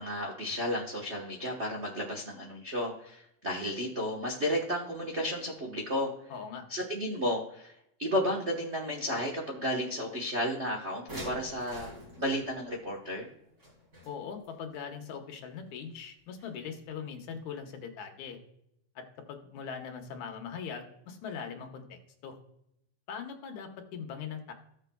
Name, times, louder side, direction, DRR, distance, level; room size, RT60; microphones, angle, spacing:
voice 1, 0.0-6.1 6.7-7.7 8.0-11.9 12.2-13.3, equal, 85° right, -2 dB, 0.6 m, -33 dB
voice 2, 6.3-6.6 14.1-18.4 19.0-22.4 23.1-24.5, left 6 dB, 80° left, 4 dB, 2.5 m, -41 dB
sound 1, 11.1-14.5 16.4-16.5 16.8-16.9, left 1 dB, 30° right, 3.7 m, -46 dB
16.0 x 6.6 x 2.3 m, 0.77 s
omnidirectional pair, 3.3 m